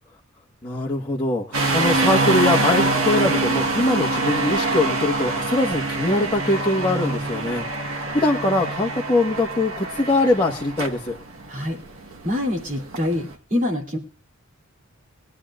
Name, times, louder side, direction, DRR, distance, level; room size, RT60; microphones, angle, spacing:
voice 1, 0.6-11.2, left 2 dB, 20° left, -4 dB, 1.4 m, -22 dB
sound 1, 1.5-13.3, right 2 dB, 70° right, 1.3 m, -25 dB
voice 2, 11.5-11.8 12.2-14.0, left 1 dB, 40° right, -1 dB, 2.9 m, -25 dB
22.5 x 10.5 x 2.5 m, 0.38 s
head